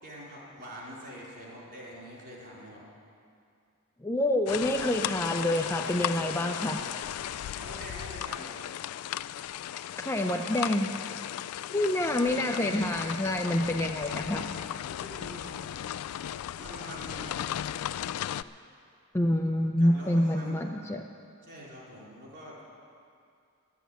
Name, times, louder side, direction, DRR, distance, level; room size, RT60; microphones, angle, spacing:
voice 1, 0.0-2.8 7.5-8.6 14.9-15.7 16.6-17.5 19.8-20.6 21.4-22.6, equal, 50° right, -5 dB, 4.1 m, -45 dB
voice 2, 4.0-6.8 9.7-10.9 11.7-14.6 19.1-21.0, left 1 dB, 10° left, 3 dB, 0.5 m, -27 dB
sound 1, 4.5-18.4, left 11 dB, 75° left, 0.3 m, -36 dB
12.0 x 8.4 x 9.3 m, 2.4 s
head